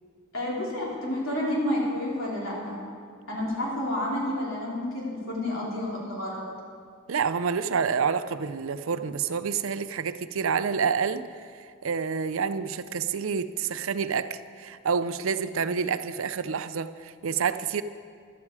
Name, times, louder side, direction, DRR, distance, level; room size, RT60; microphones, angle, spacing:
voice 1, 0.3-2.8 3.3-6.4, left 1 dB, 70° left, -5 dB, 4.0 m, -30 dB
voice 2, 7.1-17.8, right 6 dB, 70° right, 12 dB, 0.5 m, -28 dB
15.0 x 12.0 x 4.8 m, 2.1 s
head